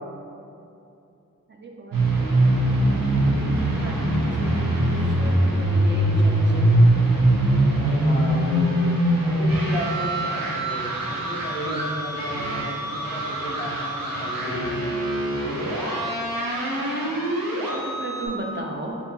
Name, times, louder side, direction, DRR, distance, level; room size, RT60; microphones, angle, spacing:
voice 1, 1.5-2.4 3.2-6.7 16.6-17.3 17.5-19.0, right 2 dB, 35° right, 0 dB, 0.4 m, -36 dB
sound 1, 1.9-18.3, right 1 dB, 70° right, 0.7 m, -22 dB
voice 2, 7.8-8.9 9.2-15.0, equal, 10° left, -5 dB, 0.8 m, -33 dB
4.2 x 2.8 x 2.7 m, 2.7 s
wide cardioid pair, 65°, 35 cm